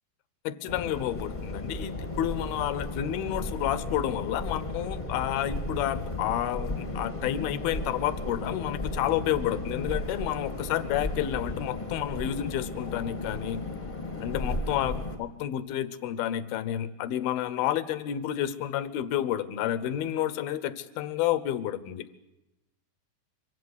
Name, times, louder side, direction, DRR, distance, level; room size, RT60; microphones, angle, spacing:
voice 1, 0.4-13.6 14.2-22.1, left 11 dB, 75° left, 15 dB, 2.6 m, -30 dB
sound 1, 0.7-15.2, left 2 dB, 25° left, 0.9 m, -35 dB
23.5 x 16.0 x 9.7 m, 0.94 s
omnidirectional pair, 4.7 m